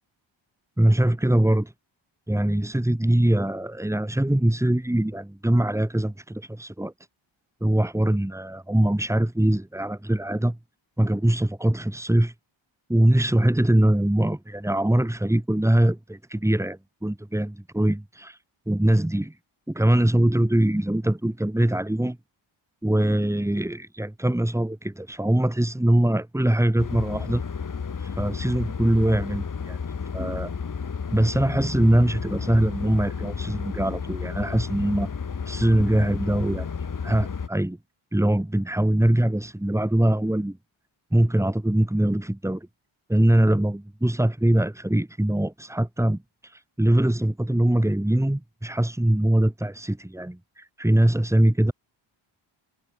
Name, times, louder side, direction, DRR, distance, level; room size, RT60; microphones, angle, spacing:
voice 1, 0.8-1.7 2.3-6.9 7.6-10.6 11.0-12.3 12.9-18.4 18.7-19.4 19.7-22.2 22.8-27.4 28.0-29.8 30.1-30.5 31.1-35.1 35.4-36.7 37.0-37.8 38.1-40.6 41.1-42.7 43.1-51.7, right 1 dB, 5° right, 6.6 m, -22 dB
sound 1, 26.8-37.5, left 6 dB, 40° left, 7.7 m, -32 dB
wide cardioid pair, 155°, 49 cm